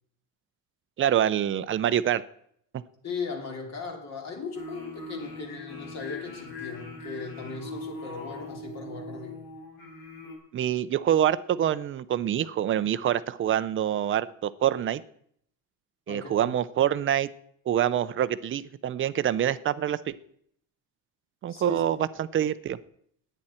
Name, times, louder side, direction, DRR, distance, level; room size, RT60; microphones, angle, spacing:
voice 1, 1.0-2.2 10.5-15.0 16.1-17.3 17.7-20.0 21.4-22.8, right 10 dB, 35° right, 14 dB, 0.6 m, -26 dB
voice 2, 3.0-9.5 16.1-16.5 21.5-21.8, left 4 dB, 45° left, 2 dB, 3.0 m, -38 dB
sound 1, 4.5-10.4, left 3 dB, 70° left, 5.0 m, -41 dB
20.5 x 9.1 x 4.3 m, 0.68 s
cardioid pair, 150°, 37 cm